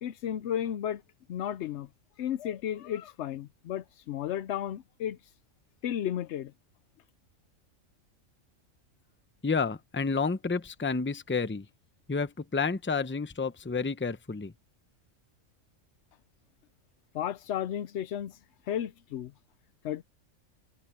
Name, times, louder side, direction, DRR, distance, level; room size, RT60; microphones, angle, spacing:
voice 1, 0.0-1.0 1.3-1.9 2.2-5.3 5.8-6.5 17.1-18.4 18.6-19.3 19.8-20.0, left 10 dB, 65° left, 0.8 m, -33 dB
voice 2, 9.4-11.6 12.1-14.5, left 4 dB, 15° left, 0.5 m, -30 dB
omnidirectional pair, 1.4 m